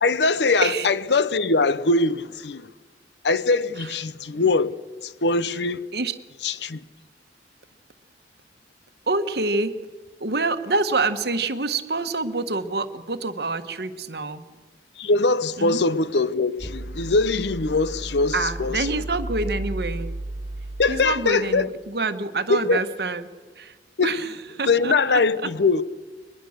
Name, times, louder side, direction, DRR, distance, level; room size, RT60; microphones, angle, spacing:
voice 1, 0.0-2.7 3.2-4.8 5.0-5.9 6.4-6.8 15.0-19.0 20.8-21.7 22.5-22.8 24.0-24.1 24.7-25.8, left 3 dB, 75° left, 0.8 m, -22 dB
voice 2, 9.1-9.7 10.2-14.4 15.6-15.8 18.3-20.1 20.9-23.3 23.6-23.7 24.0-24.3 24.6-25.2, right 3 dB, 65° right, 1.3 m, -26 dB
sound 1, 16.6-21.6, right 1 dB, 35° right, 5.3 m, -34 dB
22.5 x 20.5 x 6.6 m
head